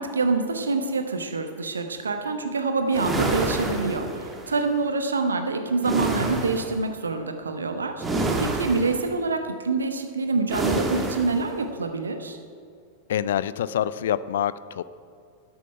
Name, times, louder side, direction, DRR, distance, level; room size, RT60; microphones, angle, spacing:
voice 1, 0.0-12.4, right 3 dB, 75° right, 6 dB, 1.0 m, -26 dB
sound 1, 2.9-4.5 5.8-6.8 8.0-9.1 10.5-11.4, right 2 dB, 15° right, 1.4 m, -27 dB
voice 2, 13.1-14.8, left 10 dB, 60° left, 17 dB, 0.3 m, -26 dB
12.5 x 7.7 x 5.7 m, 2.3 s
figure-of-eight pair, 90°, 0 cm